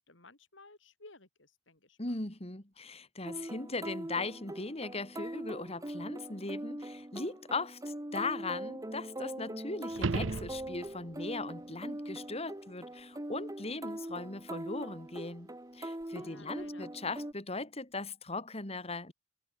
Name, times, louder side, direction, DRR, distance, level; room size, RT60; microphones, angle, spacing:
voice 1, 0.0-2.0 16.1-16.9, left 2 dB, 70° left, 5.4 m, -56 dB
voice 2, 2.0-19.1, left 3 dB, 30° left, 3.0 m, -39 dB
sound 1, 3.2-17.3, right 1 dB, 20° right, 1.9 m, -42 dB
sound 2, 9.9-11.1 16.0-16.1, right 3 dB, 80° right, 0.8 m, -35 dB
head